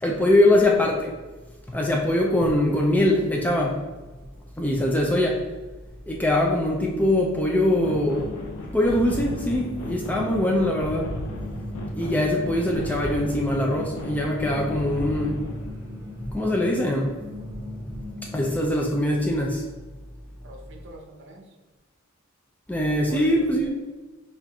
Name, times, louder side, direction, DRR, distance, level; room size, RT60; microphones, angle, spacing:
voice 1, 0.0-1.1 1.7-3.9 4.6-5.5 6.1-8.4 8.7-11.2 11.9-15.7 16.2-17.5 17.9-18.0 18.3-19.6 22.7-23.7, left 1 dB, 10° left, -1 dB, 0.3 m, -23 dB
sound 1, 7.8-15.7, left 1 dB, 85° left, 0.5 m, -35 dB
sound 2, 9.2-18.5, left 1 dB, 15° right, 0.9 m, -39 dB
voice 2, 12.8-13.2 20.4-21.5 23.1-23.7, right 1 dB, 55° right, 2 dB, 0.6 m, -44 dB
5.6 x 2.4 x 2.3 m, 1.3 s
head